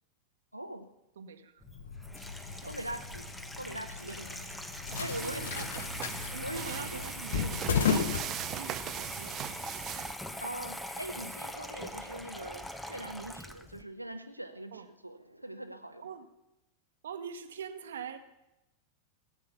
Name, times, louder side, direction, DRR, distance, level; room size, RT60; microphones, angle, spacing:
voice 1, 0.5-0.9 2.7-3.3 3.6-4.4 5.0-5.8 6.4-7.0 10.4-16.1, right 1 dB, 85° right, 9 dB, 0.9 m, -42 dB
voice 2, 1.2-1.6 2.5-2.8 4.0-4.3 5.2-5.7 6.3-9.7 14.7-14.9 16.0-16.3 17.0-18.2, right 7 dB, 65° right, 9 dB, 1.2 m, -44 dB
Water tap faucet / Sink (filling or washing), 1.6-13.8, left 1 dB, 5° left, 1.0 m, -42 dB
sound 1, 1.7-9.0, left 7 dB, 60° left, 0.9 m, -35 dB
sound 2, 4.9-10.1, right 12 dB, 35° right, 0.5 m, -40 dB
16.5 x 8.3 x 6.9 m, 0.91 s
figure-of-eight pair, 90°, 0 cm